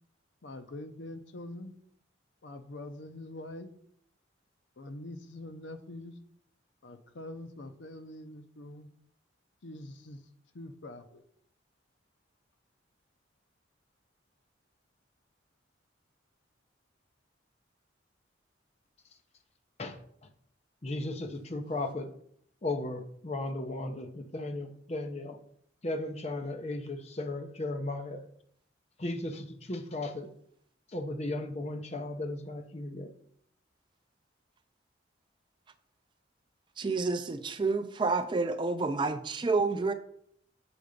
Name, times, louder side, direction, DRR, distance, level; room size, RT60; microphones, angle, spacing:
voice 1, 0.4-1.7 2.4-3.7 4.8-6.2 6.8-8.9 9.6-10.2 10.5-11.2, left 1 dB, 70° left, 0.6 m, -44 dB
voice 2, 20.8-22.1 22.6-25.4 25.8-28.2 29.0-30.3 30.9-33.1, left 2 dB, 35° left, 0.7 m, -36 dB
voice 3, 36.8-39.9, right 3 dB, 25° right, 0.4 m, -29 dB
6.9 x 3.8 x 5.1 m
head